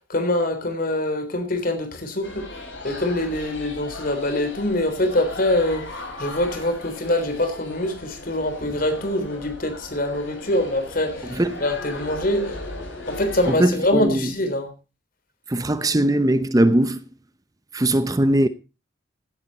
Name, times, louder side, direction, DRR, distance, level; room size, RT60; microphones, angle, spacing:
voice 1, 0.1-2.5 2.8-12.6 13.1-14.7, left 1 dB, 50° left, 3.6 m, -24 dB
sound 1, 2.2-13.5, left 2 dB, 85° left, 7.0 m, -37 dB
voice 2, 11.2-11.7 13.5-14.3 15.5-17.0 17.7-18.5, right 1 dB, 20° right, 0.7 m, -20 dB
16.5 x 10.5 x 4.1 m
head